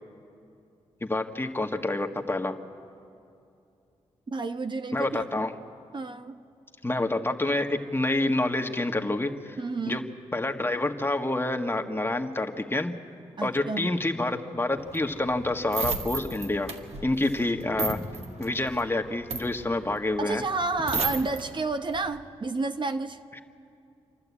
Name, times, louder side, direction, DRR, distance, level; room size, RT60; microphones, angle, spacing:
voice 1, 1.0-2.6 4.9-5.5 6.8-9.6 9.9-10.0 10.3-12.9 13.4-16.7 17.0-18.0 18.4-20.4, left 2 dB, 20° left, 1.7 m, -28 dB
voice 2, 4.3-5.2 5.9-6.4 9.6-10.1 13.4-13.9 20.2-23.2, right 3 dB, 40° right, 1.0 m, -30 dB
sound 1, 14.8-21.4 21.8-22.1, right 4 dB, 60° right, 2.0 m, -33 dB
28.0 x 11.5 x 8.5 m
supercardioid pair, 45°, 12 cm